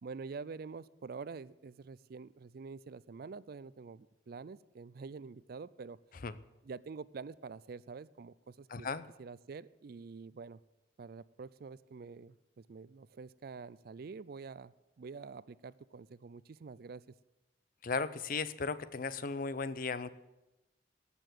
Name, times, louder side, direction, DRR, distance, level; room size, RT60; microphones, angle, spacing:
voice 1, 0.0-6.0 6.6-8.9 9.2-10.6 11.0-17.1, right 4 dB, 55° right, 19 dB, 0.4 m, -47 dB
voice 2, 8.7-9.1 17.8-20.1, left 4 dB, 50° left, 15 dB, 0.6 m, -36 dB
18.5 x 6.9 x 7.8 m, 0.99 s
head